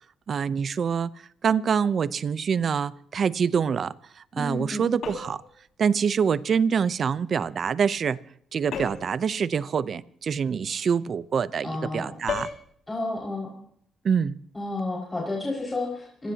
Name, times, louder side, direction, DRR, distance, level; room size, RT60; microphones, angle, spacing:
voice 1, 0.3-1.1 1.4-3.9 4.4-5.4 5.8-8.2 8.5-12.5 14.0-14.4, right 6 dB, 50° right, 0.7 m, -25 dB
voice 2, 4.4-4.9 11.6-12.2 12.9-13.5 14.5-16.3, left 2 dB, 20° left, 5.7 m, -31 dB
sound 1, 5.0-5.5 8.7-9.2 12.3-12.6, left 6 dB, 70° left, 5.5 m, -33 dB
26.5 x 17.5 x 2.9 m
cardioid pair, 90°, 0 cm